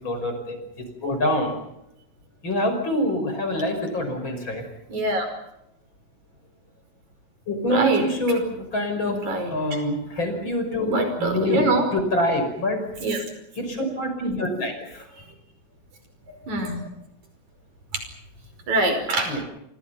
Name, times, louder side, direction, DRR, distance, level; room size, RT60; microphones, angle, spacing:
voice 1, 0.0-1.6 2.4-4.6 7.5-9.2 9.5-12.8 13.6-15.1 19.3-19.4, left 1 dB, 40° left, 6 dB, 6.1 m, -26 dB
voice 2, 4.9-5.3 7.6-8.4 9.1-9.5 10.8-11.9 13.0-13.2 16.3-16.8 18.7-19.3, right 2 dB, 75° right, 6 dB, 6.6 m, -24 dB
30.0 x 26.0 x 5.8 m, 0.83 s
omnidirectional pair, 3.3 m